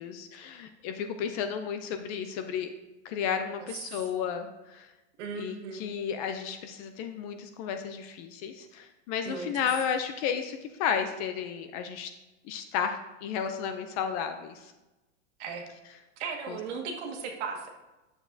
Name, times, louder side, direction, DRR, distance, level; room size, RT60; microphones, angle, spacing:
voice 1, 0.0-2.7 3.0-4.9 5.3-12.1 12.4-14.7 16.5-16.6, left 7 dB, 30° left, 7 dB, 0.4 m, -33 dB
voice 2, 5.2-5.8 9.2-9.5 15.4-15.6 16.2-17.7, right 5 dB, 65° right, 2 dB, 1.7 m, -36 dB
11.0 x 7.1 x 2.6 m, 1.1 s
supercardioid pair, 160°, 37 cm